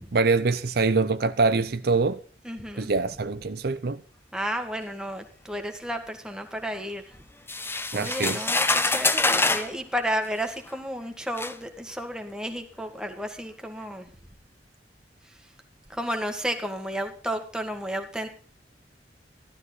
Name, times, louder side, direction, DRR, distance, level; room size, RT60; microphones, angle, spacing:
voice 1, 0.1-2.2 2.8-4.0 7.9-8.4, right 4 dB, 60° right, 0.7 m, -24 dB
voice 2, 2.4-2.9 4.3-7.0 7.9-14.1 15.9-18.3, equal, 5° right, 2.0 m, -32 dB
sound 1, 7.5-9.7 10.7-10.8 11.4-11.6, left 3 dB, 15° left, 0.8 m, -25 dB
14.5 x 12.5 x 4.0 m
head